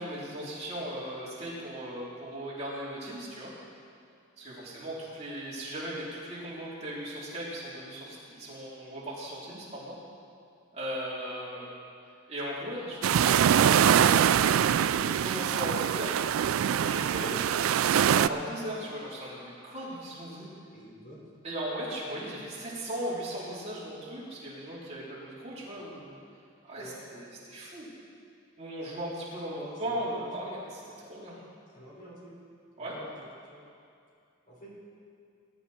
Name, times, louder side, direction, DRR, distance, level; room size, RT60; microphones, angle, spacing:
voice 1, 0.0-3.5 4.4-10.0 10.7-11.7 12.3-16.2 16.8-20.5 21.4-26.1 26.6-27.9 28.6-30.6 31.0-31.4 32.8-33.0, right 1 dB, 30° right, -7 dB, 3.6 m, -38 dB
sound 1, 13.0-18.3, right 9 dB, 85° right, 0.3 m, -23 dB
voice 2, 20.7-21.2 25.8-25.9 26.7-27.1 29.5-30.5 31.7-32.3 32.8-33.7 34.5-34.7, equal, 40° left, -5 dB, 4.4 m, -49 dB
20.0 x 11.5 x 4.3 m, 2.4 s
head